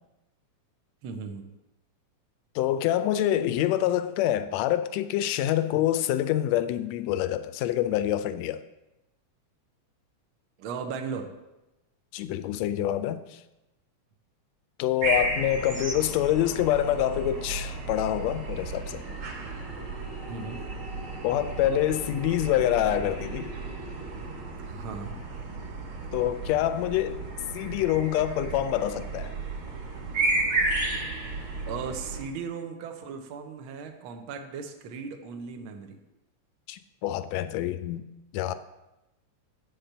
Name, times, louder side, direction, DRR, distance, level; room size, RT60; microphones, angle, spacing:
voice 1, 1.0-1.4 10.6-11.3 20.3-20.6 24.7-25.1 31.7-36.0, right 5 dB, 70° right, 1.2 m, -37 dB
voice 2, 2.6-8.6 12.1-13.4 14.8-19.0 21.2-23.5 26.1-27.2 27.5-29.3 36.7-38.1 38.3-38.5, left 12 dB, 80° left, 1.7 m, -26 dB
sound 1, 15.0-32.3, right 3 dB, 50° right, 2.4 m, -33 dB
sound 2, 15.3-25.6, equal, ahead, 0.8 m, -46 dB
8.3 x 5.9 x 6.6 m
omnidirectional pair, 3.3 m